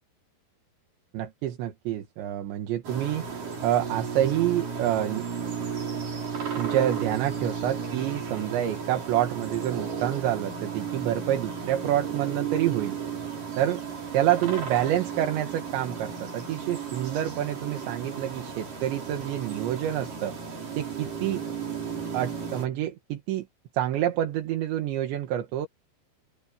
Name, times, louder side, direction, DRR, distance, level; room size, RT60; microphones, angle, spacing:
voice 1, 1.1-3.3 3.6-5.2 6.6-13.0 13.6-13.8 14.1-20.4 20.8-21.4 22.1-23.5 23.7-25.7, right 12 dB, 80° right, 3.9 m, -27 dB
sound 1, 2.8-22.7, right 6 dB, 50° right, 7.1 m, -34 dB
open air
omnidirectional pair, 5.2 m